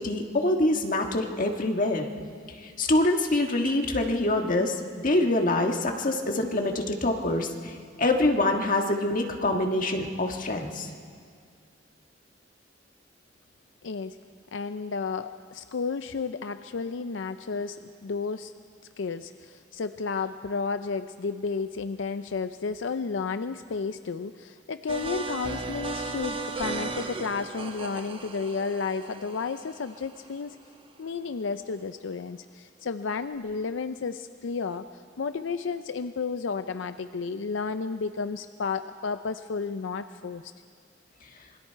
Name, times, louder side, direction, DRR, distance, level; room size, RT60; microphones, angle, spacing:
voice 1, 0.0-2.1 2.6-10.9, left 2 dB, 45° left, 3 dB, 1.6 m, -25 dB
voice 2, 13.8-14.2 14.5-18.5 19.0-30.6 31.0-34.8 35.2-40.5, left 4 dB, 80° left, 10 dB, 0.5 m, -32 dB
sound 1, 24.9-30.7, right 3 dB, 30° right, 1.1 m, -36 dB
26.0 x 21.5 x 4.6 m, 2.1 s
head